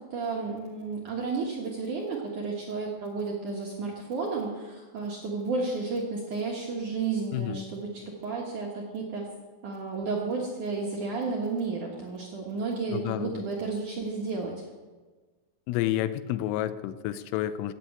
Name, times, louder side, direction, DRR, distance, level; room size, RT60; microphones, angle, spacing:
voice 1, 0.0-9.3 9.6-14.6, right 4 dB, 65° right, -2 dB, 2.1 m, -32 dB
voice 2, 7.3-7.6 12.9-13.4 15.7-17.7, left 13 dB, 90° left, 13 dB, 3.4 m, -30 dB
15.5 x 9.4 x 8.3 m, 1.3 s
omnidirectional pair, 5.8 m